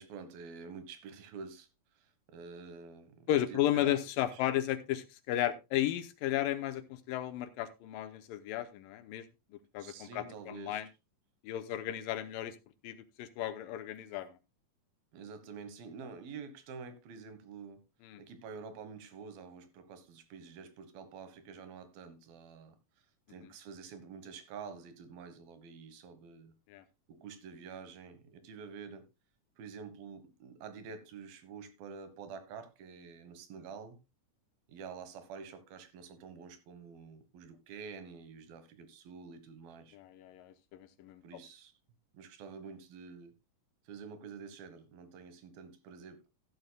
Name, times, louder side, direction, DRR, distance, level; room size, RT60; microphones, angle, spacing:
voice 1, 0.0-4.0 4.3-4.5 9.8-10.8 15.1-17.9 18.2-26.5 27.1-29.1 29.6-34.0 34.7-40.0 41.2-41.7 42.1-43.3 43.8-46.3, right 5 dB, 80° right, 3.2 m, -48 dB
voice 2, 3.3-9.3 9.7-10.9 11.4-12.6 12.8-14.3 18.0-18.2 26.7-26.8 39.9-41.2, left 12 dB, 80° left, 2.4 m, -34 dB
14.0 x 11.5 x 2.3 m
omnidirectional pair, 4.2 m